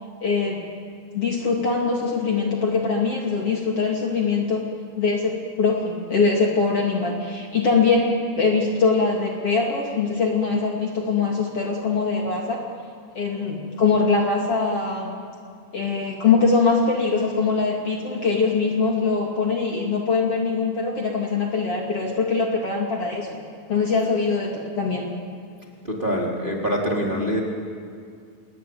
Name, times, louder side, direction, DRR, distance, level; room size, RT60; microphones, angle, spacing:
voice 1, 0.2-0.6 1.1-4.6 5.0-12.6 13.1-15.1 15.7-23.4 23.7-25.1, left 4 dB, 40° left, 0 dB, 3.1 m, -22 dB
voice 2, 25.8-27.4, equal, 15° right, -2 dB, 3.5 m, -24 dB
28.0 x 22.0 x 9.5 m, 2.2 s
omnidirectional pair, 4.3 m